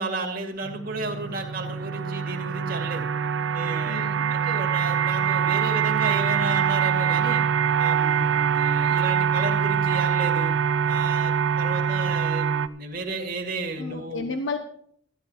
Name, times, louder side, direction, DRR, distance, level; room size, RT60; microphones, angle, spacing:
voice 1, 0.0-3.1 3.5-7.4 7.8-10.5 10.9-14.3, right 3 dB, 50° right, 2 dB, 2.3 m, -33 dB
sound 1, 0.6-12.7, right 7 dB, 75° right, 0.5 m, -24 dB
voice 2, 3.9-4.3 13.8-14.6, left 3 dB, 80° left, 7 dB, 1.1 m, -32 dB
14.0 x 11.5 x 4.3 m, 0.62 s
head